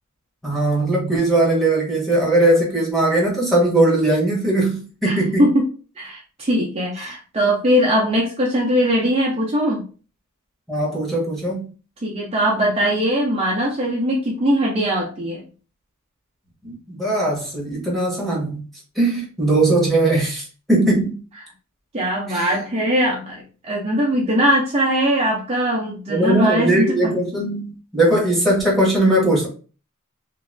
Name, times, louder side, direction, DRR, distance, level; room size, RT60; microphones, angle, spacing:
voice 1, 0.4-5.5 7.0-7.1 10.7-11.7 16.6-18.6 18.9-21.2 22.3-22.5 26.1-29.5, right 1 dB, ahead, -4 dB, 1.2 m, -19 dB
voice 2, 5.0-5.6 6.0-9.8 12.0-15.4 21.9-27.1, equal, 30° right, -3 dB, 0.6 m, -20 dB
3.0 x 2.6 x 2.5 m, 0.36 s
head